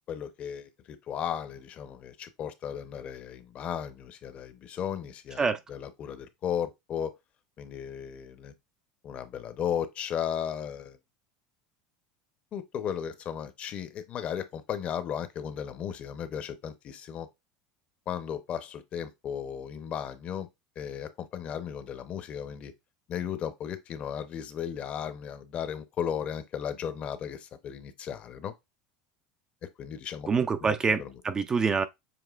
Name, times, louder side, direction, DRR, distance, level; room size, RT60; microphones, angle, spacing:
voice 1, 0.1-5.4 5.7-7.1 7.6-8.5 9.0-11.0 12.5-17.3 18.1-20.5 20.8-22.7 23.1-28.5 29.8-30.3 30.6-30.7 31.0-31.1, left 9 dB, 40° left, 0.6 m, -35 dB
voice 2, 30.3-31.9, right 5 dB, 20° right, 0.3 m, -26 dB
6.8 x 3.0 x 2.4 m
supercardioid pair, 135°, 3 cm